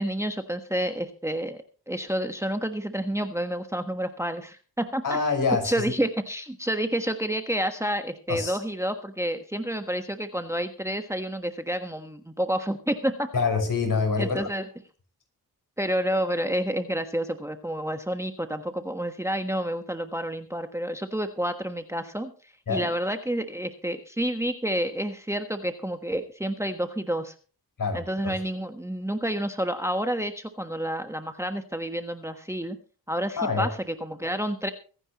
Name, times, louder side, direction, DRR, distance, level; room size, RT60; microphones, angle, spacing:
voice 1, 0.0-5.2 5.6-13.3 14.2-14.6 15.8-27.3 27.9-32.8 33.1-34.7, equal, 5° right, 7 dB, 1.3 m, -29 dB
voice 2, 5.0-5.9 8.3-8.6 13.3-14.5 22.7-22.9 27.8-28.3 33.4-33.7, left 4 dB, 55° left, 4 dB, 5.9 m, -26 dB
24.5 x 9.9 x 3.0 m, 0.38 s
cardioid pair, 65°, 39 cm